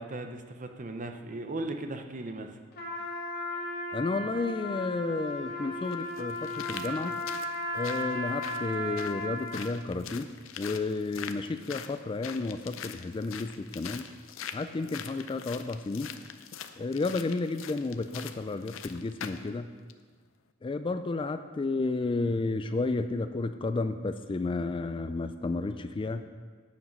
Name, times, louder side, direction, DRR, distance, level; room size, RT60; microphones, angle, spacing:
voice 1, 0.0-2.5, right 2 dB, 40° right, 6 dB, 0.7 m, -37 dB
Trumpet, 2.7-9.7, left 1 dB, 55° left, 1.8 m, -35 dB
voice 2, 3.9-7.2 7.7-10.3 10.6-14.1 14.5-16.1 16.8-19.7 20.6-26.2, left 3 dB, 25° left, 10 dB, 0.3 m, -32 dB
sound 1, 5.1-5.2 5.9-19.5 19.9-20.0, left 8 dB, 80° left, 0.5 m, -43 dB
9.0 x 7.2 x 5.4 m, 1.5 s
head